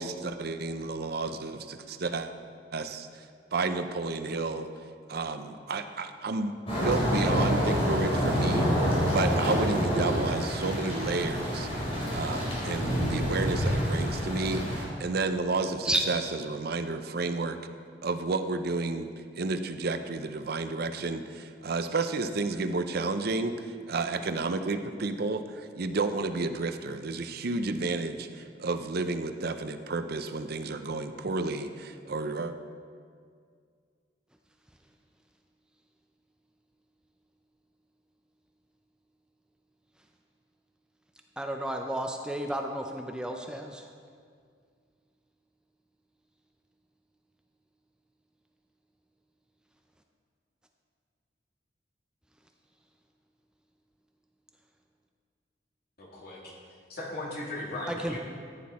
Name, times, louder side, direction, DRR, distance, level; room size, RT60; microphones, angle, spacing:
voice 1, 0.0-2.3 2.7-3.3 3.5-4.7 5.1-6.5 6.8-11.7 12.1-17.6 18.0-19.1 19.3-32.5, right 3 dB, 60° right, 9 dB, 0.6 m, -31 dB
sound 1, 6.7-14.8, equal, 35° left, 3.7 m, -27 dB
voice 2, 41.4-43.8 57.9-58.2, right 1 dB, 5° right, 3 dB, 0.5 m, -31 dB
voice 3, 56.0-56.5 56.9-58.2, left 1 dB, 60° left, -5 dB, 3.0 m, -37 dB
14.5 x 9.5 x 4.2 m, 2.1 s
head